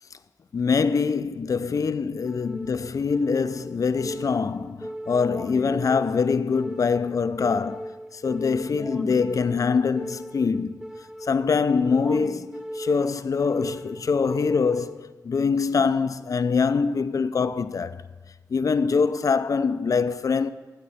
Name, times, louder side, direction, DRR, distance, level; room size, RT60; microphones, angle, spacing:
voice 1, 0.5-10.8 11.2-18.0 18.5-20.5, left 5 dB, 55° left, 0.4 m, -24 dB
sound 1, 2.2-15.2, right 1 dB, 10° right, 0.5 m, -38 dB
12.5 x 4.3 x 6.9 m
cardioid pair, 70°, 7 cm